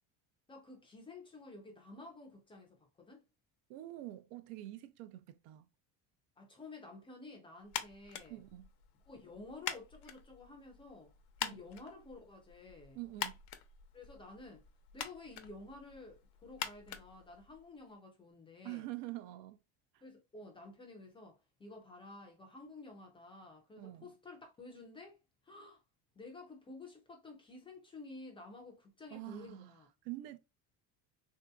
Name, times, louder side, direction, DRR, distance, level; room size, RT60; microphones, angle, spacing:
voice 1, 0.5-3.2 6.4-8.4 9.1-11.1 11.4-13.0 13.9-14.6 14.9-18.9 20.0-25.2 25.4-25.8 26.2-29.9, left 2 dB, 15° left, 0.3 m, -52 dB
voice 2, 3.7-5.7 8.3-8.7 11.4-11.6 12.9-13.4 18.6-19.6 19.9-20.0 23.8-24.1 29.1-29.7 30.0-30.4, right 16 dB, 85° right, 0.6 m, -46 dB
sound 1, 7.7-17.9, left 10 dB, 75° left, 0.7 m, -46 dB
3.6 x 2.7 x 2.2 m
cardioid pair, 180°, 40 cm